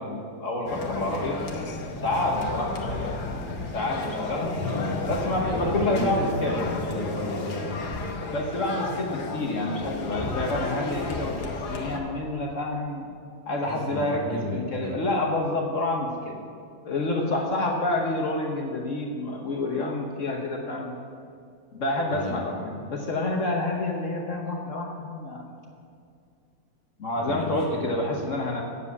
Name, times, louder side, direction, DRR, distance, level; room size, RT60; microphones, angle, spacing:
voice 1, 0.0-1.5 2.0-3.1 3.5-4.6 5.1-6.6 8.3-13.1 13.5-16.4 16.8-21.0 21.7-25.5 27.0-28.6, left 2 dB, 55° left, 0 dB, 1.3 m, -28 dB
sound 1, 0.7-12.0, left 3 dB, 80° left, 1.6 m, -32 dB
voice 2, 4.6-5.0 5.4-8.0 13.6-15.0 22.1-22.4 27.1-27.8 28.1-28.2, equal, 30° right, -4 dB, 2.3 m, -33 dB
8.5 x 7.4 x 8.2 m, 2.4 s
omnidirectional pair, 1.7 m